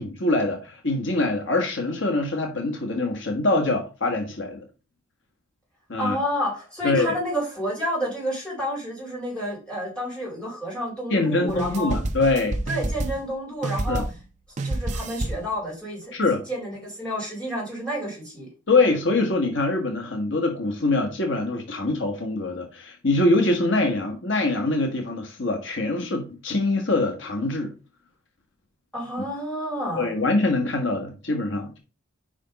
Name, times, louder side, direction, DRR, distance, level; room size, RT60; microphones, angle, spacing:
voice 1, 0.0-4.6 5.9-6.2 6.8-7.1 11.1-12.6 13.9-14.0 16.1-16.4 18.7-27.7 29.9-31.8, left 2 dB, 65° left, 1.3 m, -24 dB
voice 2, 6.0-12.0 12.7-14.0 14.6-16.1 16.5-18.5 28.9-30.1, equal, 5° left, 3.8 m, -30 dB
sound 1, 11.5-13.4 13.6-14.3 14.6-15.5, right 2 dB, 35° right, 0.6 m, -29 dB
5.2 x 5.1 x 5.2 m
head